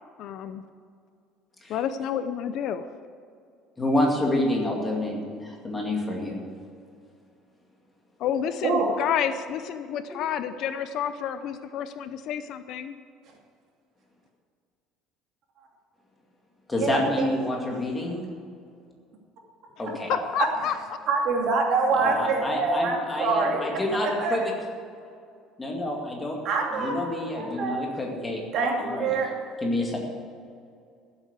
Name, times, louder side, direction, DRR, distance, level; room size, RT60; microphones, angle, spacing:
voice 1, 0.2-0.6 1.7-2.9 8.2-13.0 20.1-20.7, left 9 dB, 50° left, 11 dB, 0.6 m, -29 dB
voice 2, 3.8-6.4 16.7-18.3 19.8-20.1 21.9-24.4 25.6-26.4 26.7-28.4 28.8-29.1 29.6-30.0, left 1 dB, 10° left, -1 dB, 2.3 m, -28 dB
voice 3, 16.8-17.3 20.6-20.7 21.1-23.6 24.2-24.4 26.4-27.8 28.5-29.3, right 4 dB, 45° right, 0 dB, 2.6 m, -26 dB
14.5 x 8.2 x 8.2 m, 2.3 s
cardioid pair, 170°, 0 cm